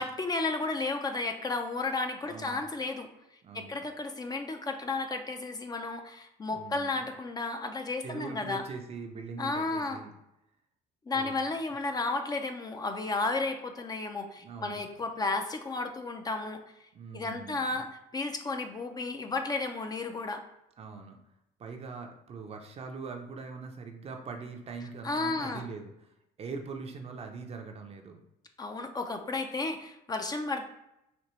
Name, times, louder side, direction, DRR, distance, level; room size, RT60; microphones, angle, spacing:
voice 1, 0.0-3.1 3.5-8.6 9.4-10.0 11.1-16.6 17.1-20.4 25.0-25.6 28.6-30.6, left 3 dB, 25° left, 5 dB, 0.4 m, -33 dB
voice 2, 2.2-2.6 3.4-3.8 6.5-7.0 8.0-10.1 11.1-11.3 14.4-14.9 16.9-17.8 20.8-21.2 21.6-25.9 26.4-28.2, right 4 dB, 35° right, 4 dB, 0.5 m, -42 dB
4.2 x 2.9 x 3.0 m, 0.85 s
cardioid pair, 110°, 17 cm